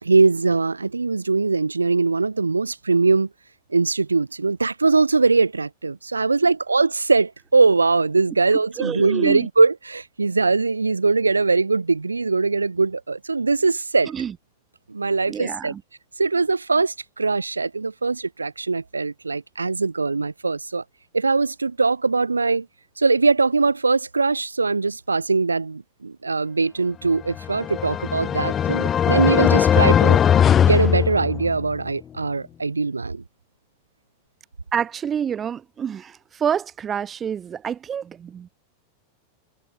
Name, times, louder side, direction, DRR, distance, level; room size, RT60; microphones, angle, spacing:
voice 1, 0.0-3.3 3.7-14.1 14.9-15.7 16.2-20.8 21.1-22.7 23.0-30.2 30.6-33.2, right 4 dB, 80° right, 2.7 m, -21 dB
voice 2, 8.8-9.5 14.1-14.3 15.3-15.8 34.7-38.5, right 8 dB, 25° right, 1.3 m, -27 dB
sound 1, 27.3-31.7, left 9 dB, 25° left, 1.7 m, -19 dB
figure-of-eight pair, 90°, 0 cm